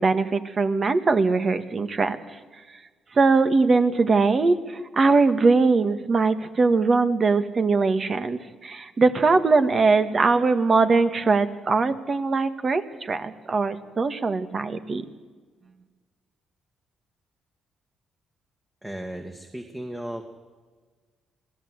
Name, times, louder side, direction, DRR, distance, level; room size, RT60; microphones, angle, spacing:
voice 1, 0.0-2.2 3.1-15.0, right 4 dB, 40° right, 10 dB, 1.7 m, -21 dB
voice 2, 18.8-20.2, right 1 dB, 10° right, 4 dB, 2.1 m, -35 dB
26.0 x 17.0 x 8.2 m, 1.4 s
cardioid pair, 90°, 0 cm